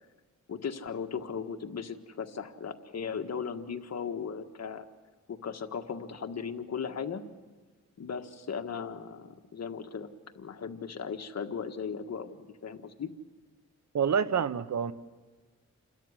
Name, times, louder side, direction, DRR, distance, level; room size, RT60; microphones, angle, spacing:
voice 1, 0.5-4.9 5.3-7.2 8.0-10.1 10.3-13.1, left 6 dB, 60° left, 6 dB, 1.6 m, -37 dB
voice 2, 13.9-14.9, right 7 dB, 65° right, 15 dB, 1.0 m, -27 dB
29.0 x 13.5 x 10.0 m, 1.3 s
cardioid pair, 85°, 30 cm